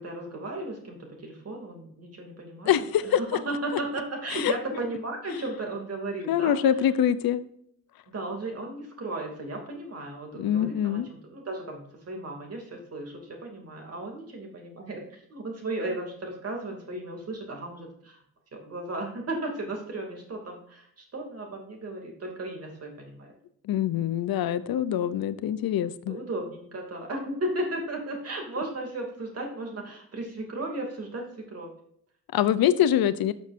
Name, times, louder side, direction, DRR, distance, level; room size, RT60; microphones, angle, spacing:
voice 1, 0.0-6.6 8.1-18.2 18.5-23.3 26.1-31.7, right 2 dB, 45° right, 1 dB, 2.7 m, -35 dB
voice 2, 2.7-3.2 4.3-4.5 6.3-7.4 10.4-11.1 23.7-26.2 32.3-33.3, left 10 dB, 90° left, 14 dB, 0.7 m, -24 dB
12.0 x 6.3 x 2.6 m, 0.67 s
wide cardioid pair, 150°, 35 cm